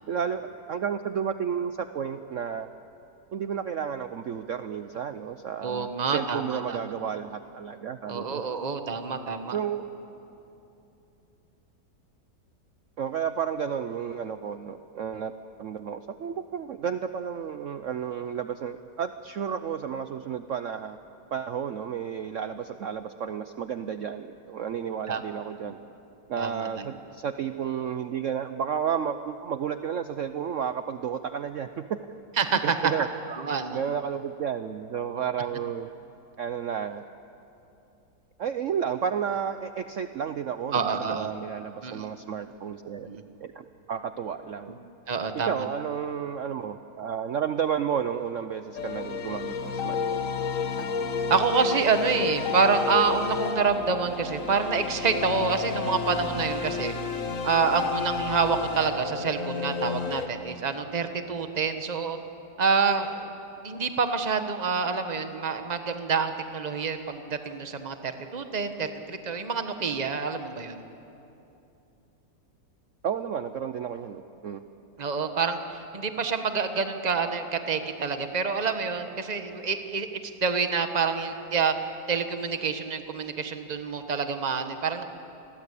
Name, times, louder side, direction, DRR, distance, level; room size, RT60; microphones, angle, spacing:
voice 1, 0.1-2.7 3.3-8.4 9.3-9.8 13.0-15.3 15.6-21.0 21.3-25.8 26.3-32.0 32.6-33.1 33.7-35.9 36.4-37.1 38.4-43.1 43.4-44.8 45.3-50.2 73.0-74.6, right 8 dB, 60° right, 9 dB, 0.9 m, -32 dB
voice 2, 5.6-6.9 8.1-9.6 25.1-25.2 26.4-26.9 32.4-32.7 33.4-33.8 40.7-41.3 41.8-42.1 43.1-43.2 45.1-45.6 51.3-56.9 57.4-62.2 62.6-63.3 63.6-70.8 75.0-80.1 80.4-81.7 82.1-85.0, right 5 dB, 25° right, 7 dB, 1.4 m, -27 dB
sound 1, 48.7-60.3, left 5 dB, 50° left, 1.6 m, -31 dB
28.5 x 22.0 x 8.5 m, 2.8 s
omnidirectional pair, 1.9 m